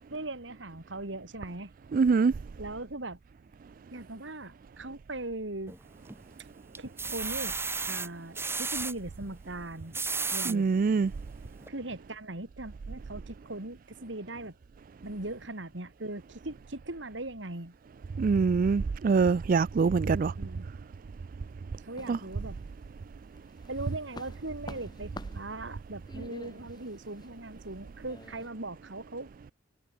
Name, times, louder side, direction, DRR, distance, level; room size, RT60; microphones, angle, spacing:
voice 1, 0.1-1.7 2.6-3.2 3.9-5.7 6.8-7.6 7.9-10.0 10.3-10.7 11.7-14.5 15.0-17.7 20.4-20.7 21.8-22.6 23.7-29.3, right 2 dB, 85° right, 3.2 m, -39 dB
voice 2, 1.9-2.3 10.5-11.1 18.2-20.3 22.1-22.2, right 5 dB, 50° right, 0.4 m, -24 dB
sound 1, 5.7-6.3 6.7-8.9 9.7-10.6 11.2-11.3 11.6-11.7, right 4 dB, 15° right, 1.8 m, -33 dB
sound 2, 22.0-23.0 23.4-28.5, left 2 dB, 25° left, 3.4 m, -49 dB
head